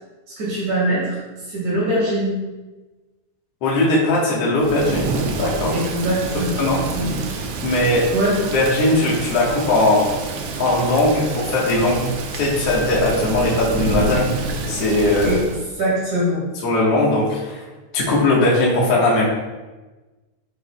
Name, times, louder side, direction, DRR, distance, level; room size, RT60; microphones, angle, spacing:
voice 1, 0.3-1.2 1.5-2.3 5.7-6.6 6.9-7.1 7.6-8.4 15.2-15.4 15.8-16.4, right 1 dB, 70° right, -7 dB, 3.7 m, -22 dB
voice 2, 3.6-5.7 6.6-6.8 7.6-8.0 8.4-10.1 10.6-12.0 12.3-15.4 16.6-17.6 17.9-19.3, left 2 dB, 60° left, -5 dB, 2.1 m, -19 dB
Thunder / Rain, 4.6-15.7, right 3 dB, 85° right, 2.2 m, -28 dB
12.0 x 5.2 x 2.2 m, 1.2 s
omnidirectional pair, 3.5 m